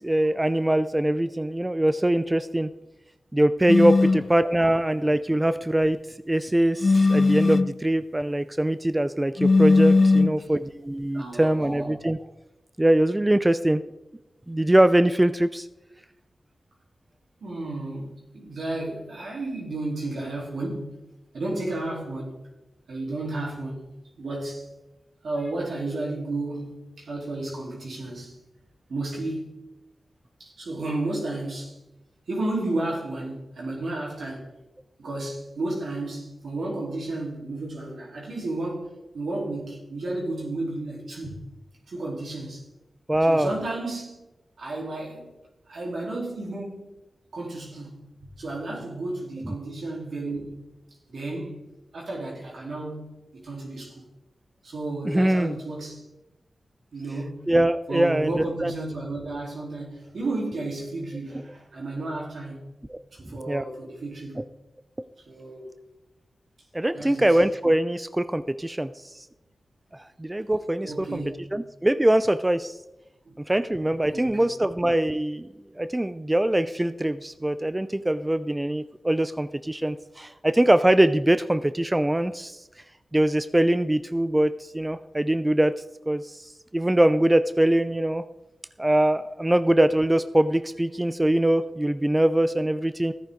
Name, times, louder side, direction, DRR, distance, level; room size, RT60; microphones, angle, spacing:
voice 1, 0.0-2.7 3.3-6.0 6.3-12.2 12.8-13.8 14.5-15.7 43.1-43.5 49.5-49.6 55.0-55.6 57.5-58.7 62.9-63.0 63.5-63.7 64.4-64.5 66.7-69.3 69.9-71.2 71.5-72.8 73.5-75.5 75.8-82.6 83.1-85.7 86.1-88.2 88.8-93.1, right 1 dB, 20° right, 0.5 m, -23 dB
sound 1, 3.7-4.3 6.8-7.8 9.4-10.4, left 3 dB, 50° left, 0.4 m, -18 dB
voice 2, 10.2-10.6 11.1-11.9 17.4-21.0 21.3-22.4 22.9-23.9 24.2-24.7 25.2-28.4 28.9-29.6 30.4-31.8 32.3-34.5 35.0-41.4 41.9-42.6 43.3-44.2 44.6-45.3 45.7-46.9 47.3-48.0 48.4-50.7 51.1-51.6 51.9-53.1 53.4-54.0 54.6-56.0 56.9-57.5 57.9-62.7 63.1-64.4 65.3-65.7 66.9-67.4 70.8-71.5 73.3-73.4 74.1-74.5, right 2 dB, 80° right, 3.9 m, -32 dB
14.0 x 9.5 x 3.9 m
cardioid pair, 50°, 0 cm